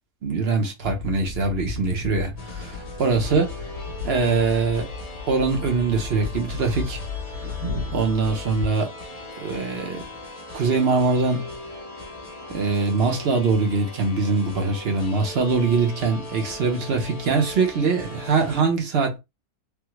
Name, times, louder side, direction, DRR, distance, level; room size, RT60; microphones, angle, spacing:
voice 1, 0.2-3.5 4.0-4.8 5.3-7.0 7.9-8.9 9.4-10.0 10.5-11.5 12.5-19.2, right 4 dB, 50° right, 0.9 m, -23 dB
sound 1, 0.8-8.7, left 4 dB, 80° right, 1.7 m, -34 dB
sound 2, 2.4-18.6, left 2 dB, 30° left, 0.8 m, -39 dB
3.5 x 2.1 x 3.0 m
omnidirectional pair, 1.6 m